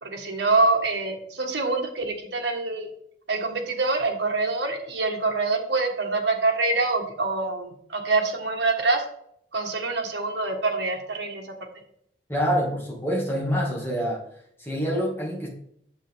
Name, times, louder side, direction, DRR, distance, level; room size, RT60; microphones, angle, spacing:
voice 1, 0.0-2.9 3.3-9.0 9.5-11.5, right 3 dB, 80° right, 1 dB, 1.5 m, -25 dB
voice 2, 12.3-14.2 14.6-15.5, equal, 15° left, -3 dB, 2.2 m, -26 dB
8.8 x 7.4 x 3.6 m, 0.71 s
head